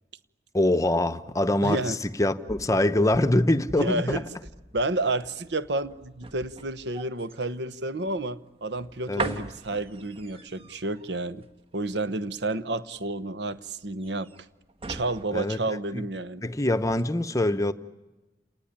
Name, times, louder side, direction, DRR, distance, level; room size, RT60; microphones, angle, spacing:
voice 1, 0.5-4.2 9.1-9.4 15.3-15.6 15.9-16.0 16.4-17.7, left 1 dB, 20° left, 0.8 m, -24 dB
voice 2, 1.6-2.0 3.8-4.2 4.7-11.4 11.7-14.3 14.9-16.5, right 2 dB, 65° right, 1.0 m, -30 dB
sound 1, 2.5-16.5 16.8-17.0, right 3 dB, 30° right, 1.7 m, -42 dB
29.5 x 19.0 x 10.0 m
head